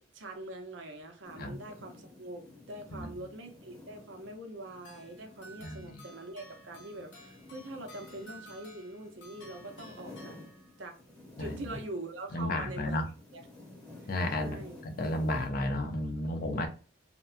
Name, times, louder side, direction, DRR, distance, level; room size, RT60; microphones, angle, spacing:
voice 1, 0.1-10.4 10.8-11.0 11.4-13.0 13.3-13.5 14.0-14.1 14.4-14.8, right 1 dB, 85° right, 0.7 m, -43 dB
sound 1, 1.2-12.3 12.6-15.5, left 2 dB, 5° left, 0.8 m, -53 dB
sound 2, 4.8-11.0, right 1 dB, 75° left, 0.9 m, -54 dB
voice 2, 5.6-6.0 11.4-11.8 12.3-13.0 14.1-16.7, left 1 dB, 50° left, 0.6 m, -33 dB
2.8 x 2.2 x 2.4 m
head